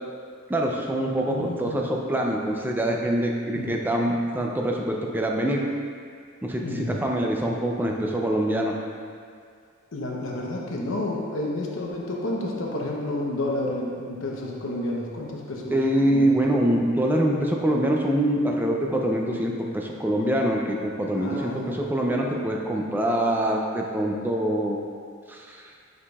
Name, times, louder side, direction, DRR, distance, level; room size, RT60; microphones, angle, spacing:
voice 1, 0.5-5.6 6.4-8.7 15.7-24.8 25.3-25.6, right 1 dB, 10° right, 0 dB, 0.4 m, -24 dB
voice 2, 1.3-1.9 3.5-3.7 6.6-7.0 9.9-16.3 21.1-21.8, left 1 dB, 70° left, -2 dB, 0.8 m, -30 dB
8.4 x 4.9 x 2.3 m, 2.2 s
head